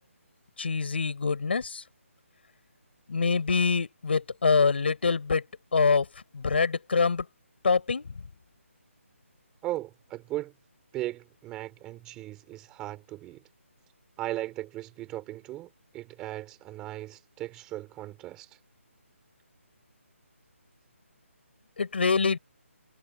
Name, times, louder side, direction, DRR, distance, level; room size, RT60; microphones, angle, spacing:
voice 1, 0.6-1.8 3.1-6.1 6.3-7.3 7.6-8.2 21.8-22.4, left 5 dB, 50° left, 5.8 m, -25 dB
voice 2, 9.6-10.5 10.9-13.4 14.2-18.6, right 15 dB, 10° right, 3.2 m, -37 dB
hypercardioid pair, 175°, 7 cm